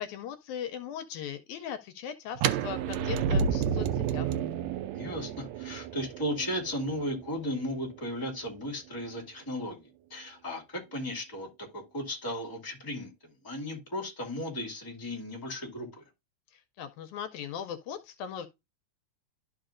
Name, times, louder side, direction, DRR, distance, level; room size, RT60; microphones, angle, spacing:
voice 1, 0.0-4.4 16.5-18.5, left 8 dB, 80° left, 1.9 m, -39 dB
sound 1, 2.4-8.2, right 7 dB, 75° right, 1.7 m, -31 dB
voice 2, 4.9-13.1 13.4-16.0, equal, 10° left, 1.7 m, -35 dB
12.0 x 4.7 x 2.5 m
omnidirectional pair, 3.5 m